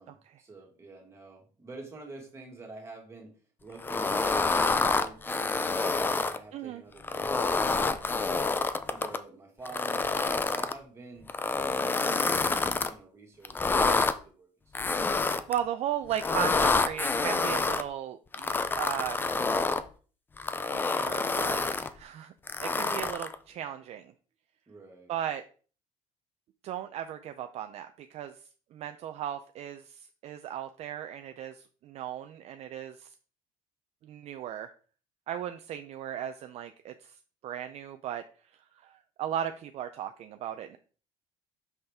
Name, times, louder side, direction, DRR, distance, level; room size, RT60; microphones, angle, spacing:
voice 1, 0.0-3.3 3.6-8.6 8.9-11.3 11.6-14.9 24.7-25.2, right 3 dB, 20° right, 0 dB, 1.9 m, -48 dB
sound 1, 3.8-6.4 7.0-9.2 9.6-10.7 11.3-12.9 13.4-14.1 14.7-15.6 16.1-17.8 18.3-19.8 20.4-21.9 22.5-23.3, left 3 dB, 15° left, 0.4 m, -27 dB
voice 2, 6.5-6.8 15.5-19.2 20.9-22.3 22.6-24.1 25.1-25.4 26.6-28.4 28.7-33.1 34.0-34.7 35.3-37.2 37.4-38.2 38.8-40.8, right 10 dB, 50° right, 8 dB, 0.4 m, -36 dB
5.9 x 5.5 x 3.5 m, 0.40 s
cardioid pair, 145°, 14 cm